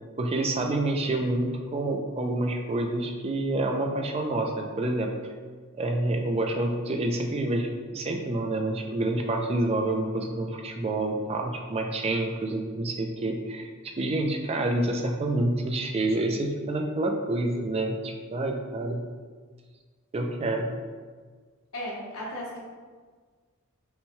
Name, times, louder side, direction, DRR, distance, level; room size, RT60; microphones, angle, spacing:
voice 1, 0.2-5.1 5.7-19.1 20.1-20.8, right 2 dB, 30° right, 3 dB, 0.3 m, -28 dB
voice 2, 21.7-22.6, left 1 dB, 70° left, -4 dB, 1.0 m, -35 dB
5.5 x 2.2 x 3.1 m, 1.5 s
head